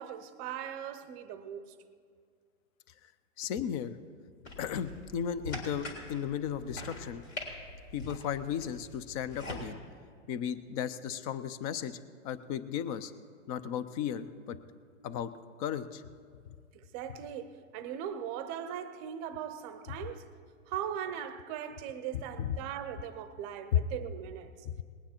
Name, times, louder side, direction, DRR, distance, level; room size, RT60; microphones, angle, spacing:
voice 1, 0.0-1.7 16.7-20.3 20.7-24.7, right 9 dB, 30° right, 0.7 m, -39 dB
voice 2, 3.4-4.0 4.6-7.2 7.9-9.8 10.3-12.0 12.2-13.1 13.5-14.6 15.0-15.3 15.6-16.0 16.5-16.6 22.4-22.6 24.7-24.8, left 9 dB, 30° left, 0.5 m, -35 dB
sound 1, 4.4-9.6, left 1 dB, 80° left, 3.7 m, -44 dB
20.5 x 9.2 x 4.4 m
hypercardioid pair, 130°, 39 cm